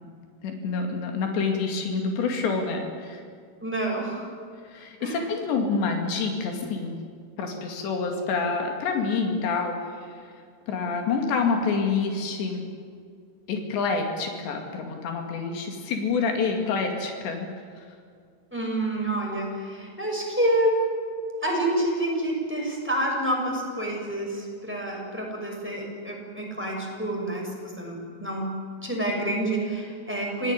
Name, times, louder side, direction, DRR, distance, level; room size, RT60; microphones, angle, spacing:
voice 1, 0.4-3.2 4.7-7.0 7.4-10.3 10.7-12.7 13.5-17.5 17.8-17.9, left 4 dB, 90° left, 3 dB, 4.6 m, -27 dB
voice 2, 3.6-4.3 5.0-5.3 18.5-20.8 21.4-28.6 28.8-30.5, right 1 dB, 5° right, 0 dB, 5.8 m, -28 dB
27.5 x 18.0 x 9.8 m, 2.1 s
omnidirectional pair, 4.8 m